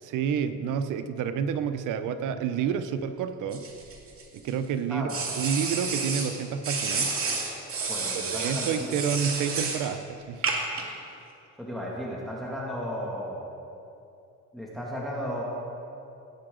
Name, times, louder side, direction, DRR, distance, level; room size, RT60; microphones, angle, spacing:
voice 1, 0.0-3.7 4.3-5.1 5.4-7.1 8.1-10.5, right 7 dB, 85° right, 10 dB, 0.7 m, -29 dB
sound 1, 3.5-4.5 5.1-6.3 6.6-9.9 10.4-10.8, right 4 dB, 50° right, 2.2 m, -30 dB
voice 2, 4.9-5.2 7.8-9.0 11.6-13.4 14.5-15.4, equal, ahead, -5 dB, 2.0 m, -34 dB
17.0 x 8.8 x 3.8 m, 2.7 s
cardioid pair, 90°, 30 cm